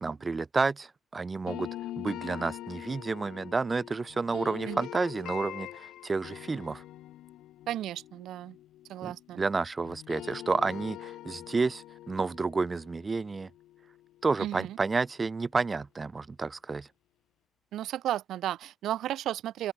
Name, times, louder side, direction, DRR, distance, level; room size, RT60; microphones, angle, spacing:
voice 1, 0.0-1.7 2.0-6.8 9.0-13.5 14.2-16.9, right 4 dB, 30° right, 0.5 m, -30 dB
sound 1, 1.5-9.5 9.8-14.8, left 14 dB, 85° left, 1.1 m, -44 dB
voice 2, 7.7-8.6 8.9-9.4 14.4-14.8 17.7-19.7, right 12 dB, 80° right, 0.6 m, -34 dB
open air
cardioid pair, 90°, 0 cm